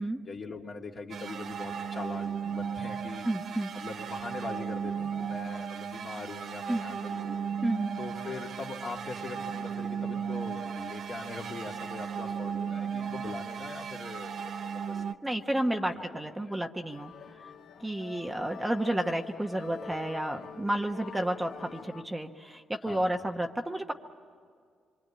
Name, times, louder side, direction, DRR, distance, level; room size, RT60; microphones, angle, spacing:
voice 1, 0.2-3.3 3.7-7.5 8.0-15.0 15.4-16.1 16.4-16.5 22.8-23.2, left 4 dB, 45° left, 0 dB, 2.4 m, -42 dB
sound 1, 1.1-15.1, right 7 dB, 60° right, 0.8 m, -36 dB
voice 2, 3.2-3.7 6.7-6.8 7.6-7.9 15.2-17.1 17.8-23.9, right 1 dB, 10° right, 4 dB, 1.2 m, -31 dB
sound 2, 16.9-22.0, left 5 dB, 75° left, 1.4 m, -46 dB
26.0 x 24.0 x 8.7 m, 2.1 s
cardioid pair, 90°, 0 cm